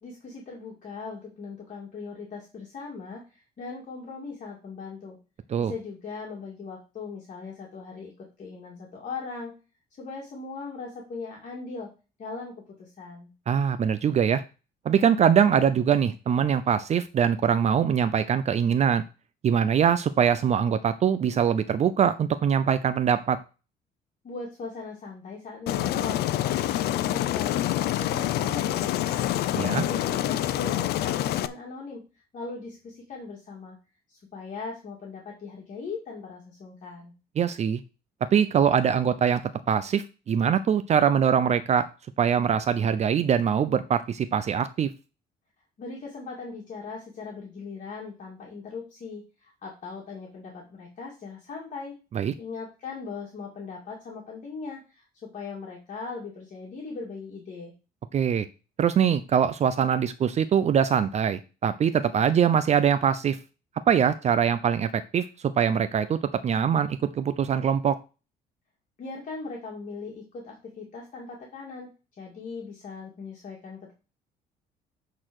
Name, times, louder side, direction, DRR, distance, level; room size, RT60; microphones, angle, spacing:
voice 1, 0.0-5.2 5.6-9.5 10.0-11.9 12.2-13.3 24.2-29.4 29.8-33.8 34.1-37.1 45.8-51.9 52.4-57.7 69.0-71.9 72.2-73.9, left 4 dB, 45° left, -2 dB, 2.4 m, -39 dB
voice 2, 13.5-14.4 14.9-19.0 19.4-23.4 29.5-29.8 37.4-37.8 38.3-39.4 39.7-41.9 42.2-44.9 52.1-52.3 58.1-58.5 58.8-63.4 63.9-66.2 66.4-68.0, right 8 dB, 40° right, 12 dB, 0.6 m, -23 dB
Aircraft, 25.7-31.5, left 13 dB, 75° left, 0.6 m, -26 dB
8.8 x 4.1 x 6.3 m, 0.32 s
cardioid pair, 110°, 17 cm